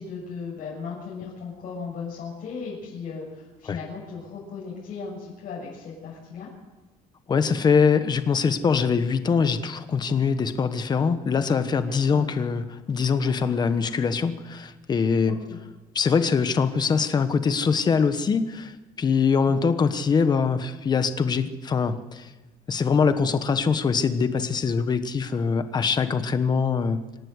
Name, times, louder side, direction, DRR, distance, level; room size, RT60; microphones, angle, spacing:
voice 1, 0.0-6.5 11.9-12.2 15.3-15.6, left 5 dB, 60° left, -6 dB, 7.3 m, -37 dB
voice 2, 7.3-15.4 15.9-22.3 22.7-27.0, left 5 dB, 25° left, 10 dB, 1.2 m, -23 dB
26.5 x 12.0 x 8.1 m, 1.2 s
cardioid pair, 170°, 16 cm